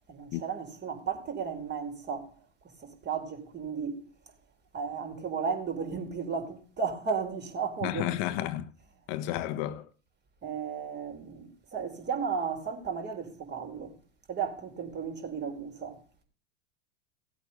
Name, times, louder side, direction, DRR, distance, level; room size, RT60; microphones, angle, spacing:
voice 1, 0.1-2.3 2.8-4.0 4.7-8.1 10.4-13.9 14.3-16.0, right 6 dB, 30° right, 4.4 m, -34 dB
voice 2, 7.8-8.7 9.1-9.9, left 13 dB, 50° left, 1.0 m, -31 dB
17.5 x 8.2 x 5.4 m
hypercardioid pair, 105°, 37 cm